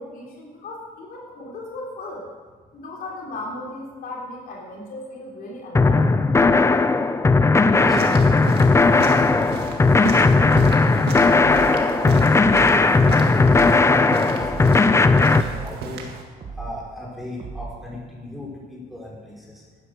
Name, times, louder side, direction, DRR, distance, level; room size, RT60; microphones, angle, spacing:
voice 1, 0.0-2.3 2.7-6.1, left 2 dB, 60° left, -3 dB, 3.5 m, -36 dB
sound 1, 5.7-15.4, left 3 dB, 15° left, 0.6 m, -17 dB
voice 2, 7.4-8.6 11.2-12.4 13.0-16.1 16.5-19.6, left 1 dB, ahead, -4 dB, 4.6 m, -36 dB
sound 2, 7.9-16.2, right 5 dB, 75° right, 2.0 m, -34 dB
sound 3, 11.4-11.8 12.4-12.8 13.4-13.8 14.4-14.8 15.4-15.8 16.4-16.8 17.4-17.8, right 4 dB, 40° right, 2.2 m, -36 dB
12.0 x 10.0 x 6.5 m, 1.4 s
cardioid pair, 110°, 17 cm